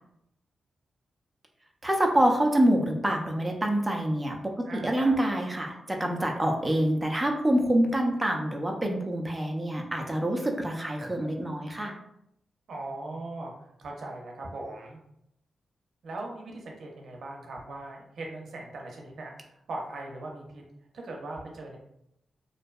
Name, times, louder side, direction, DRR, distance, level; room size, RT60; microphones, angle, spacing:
voice 1, 1.8-4.4 4.7-11.9, right 1 dB, 15° right, 1 dB, 0.4 m, -26 dB
voice 2, 4.6-5.2 12.7-13.5 13.8-15.0 16.0-20.6 21.0-21.8, right 2 dB, 70° right, 0 dB, 0.6 m, -39 dB
2.6 x 2.2 x 2.2 m, 0.78 s
cardioid pair, 80°, 0 cm